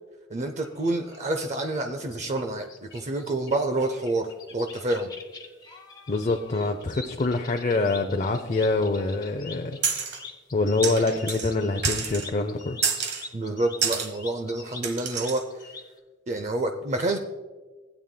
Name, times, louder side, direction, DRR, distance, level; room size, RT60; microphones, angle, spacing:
voice 1, 0.3-5.1 13.3-15.8 16.3-17.2, right 2 dB, 35° right, 6 dB, 0.5 m, -28 dB
sound 1, 0.6-16.0, left 4 dB, 20° left, 1.1 m, -45 dB
voice 2, 6.1-9.8 10.5-12.8, left 3 dB, 40° left, 4 dB, 0.5 m, -25 dB
sound 2, 9.8-10.2 10.8-11.5 11.8-12.3 12.8-13.2 13.8-14.1 14.8-15.4, right 6 dB, 60° right, 1.2 m, -28 dB
16.5 x 9.0 x 2.2 m, 1.3 s
head